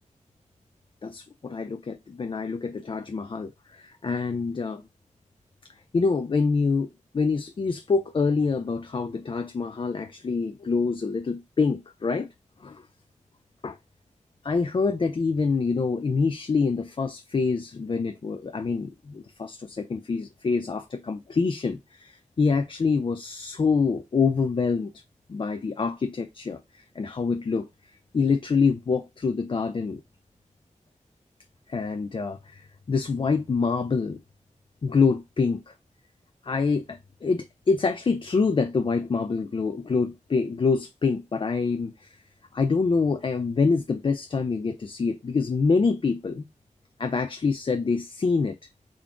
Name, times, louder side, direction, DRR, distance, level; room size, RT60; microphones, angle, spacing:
voice 1, 1.0-4.8 5.9-12.3 12.6-12.8 13.6-13.8 14.5-24.9 25.3-27.7 28.1-30.0 31.7-34.2 34.8-35.7 36.4-42.1 42.5-46.4 47.0-48.6, left 4 dB, 40° left, 0.3 m, -26 dB
3.7 x 2.3 x 3.6 m
wide cardioid pair, 85°, 13 cm